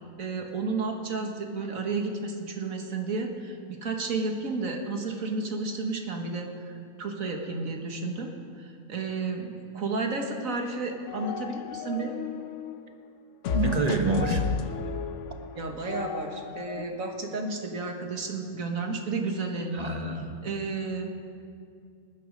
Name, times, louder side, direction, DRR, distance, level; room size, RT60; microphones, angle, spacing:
voice 1, 0.2-6.7 7.0-12.1 15.6-19.9 20.4-21.1, right 3 dB, 65° right, 3 dB, 1.9 m, -32 dB
sound 1, 10.7-12.9 13.4-16.8, left 7 dB, 65° left, 1.0 m, -33 dB
voice 2, 13.5-14.4 19.7-20.3, right 4 dB, 30° right, 4 dB, 1.2 m, -27 dB
19.0 x 11.5 x 5.2 m, 2.4 s
omnidirectional pair, 1.5 m